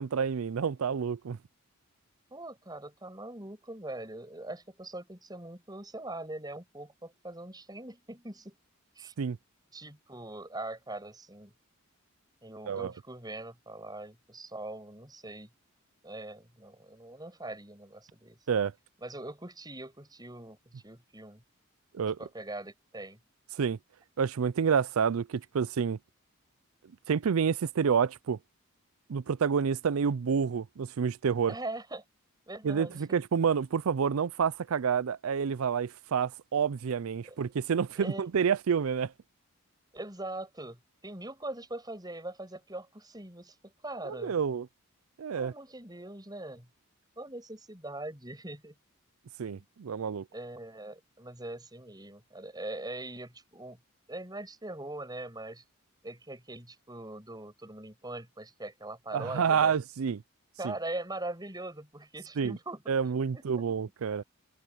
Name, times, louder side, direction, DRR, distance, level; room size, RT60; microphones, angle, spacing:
voice 1, 0.0-1.4 9.2-9.4 12.7-12.9 18.5-18.7 21.9-22.2 23.5-23.8 24.2-26.0 27.1-28.4 29.1-31.5 32.6-39.1 44.1-44.7 45.2-45.5 49.4-50.2 59.1-60.2 60.6-60.7 62.4-62.5 62.9-64.2, right 6 dB, 75° right, 0.4 m, -28 dB
voice 2, 2.3-8.5 9.0-9.1 9.7-11.5 12.4-15.5 16.0-18.4 19.0-21.4 22.2-23.2 31.5-32.0 32.5-33.0 37.3-37.4 38.0-38.2 39.9-44.3 45.3-46.7 47.2-48.7 49.5-49.6 50.3-53.8 54.1-55.6 56.0-59.8 60.6-63.4, right 2 dB, 20° right, 7.8 m, -42 dB
head